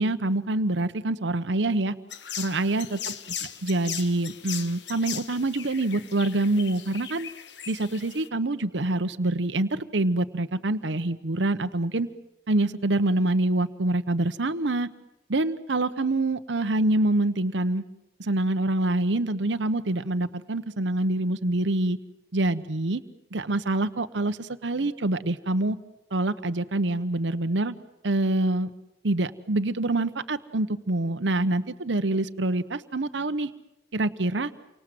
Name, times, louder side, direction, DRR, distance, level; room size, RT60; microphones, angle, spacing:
voice 1, 0.0-2.0 2.4-3.1 3.6-7.3 7.7-12.1 12.5-14.9 15.3-17.8 18.2-22.0 22.3-23.0 23.3-25.8 26.1-27.7 28.0-28.7 29.0-33.5 33.9-34.5, right 2 dB, 85° right, 10 dB, 1.0 m, -26 dB
sound 1, 2.1-8.3, left 8 dB, 75° left, 1.4 m, -38 dB
29.0 x 25.0 x 7.7 m, 0.90 s
head